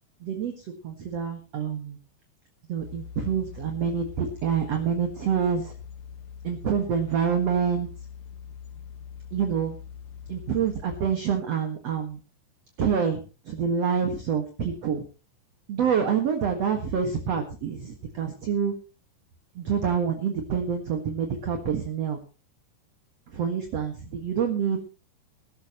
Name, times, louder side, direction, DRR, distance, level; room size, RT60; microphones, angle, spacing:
voice 1, 0.2-2.0 2.7-5.7 6.4-7.9 9.3-9.8 10.3-12.2 12.8-15.0 15.7-18.7 19.5-22.2 23.3-24.8, right 7 dB, 55° right, 4 dB, 1.9 m, -27 dB
sound 1, 2.8-11.1, left 7 dB, 60° left, 2.6 m, -43 dB
20.0 x 13.0 x 3.1 m, 0.33 s
omnidirectional pair, 5.3 m